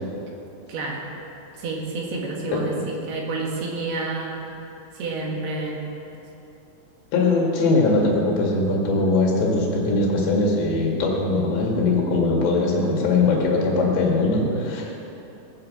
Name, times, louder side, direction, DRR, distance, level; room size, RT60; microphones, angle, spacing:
voice 1, 0.7-1.1 1.6-4.4 4.9-5.9, right 3 dB, 60° right, -1 dB, 3.3 m, -29 dB
voice 2, 2.5-2.8 7.1-15.0, left 3 dB, 65° left, -2 dB, 4.2 m, -21 dB
19.5 x 7.5 x 7.7 m, 3.0 s
omnidirectional pair, 5.7 m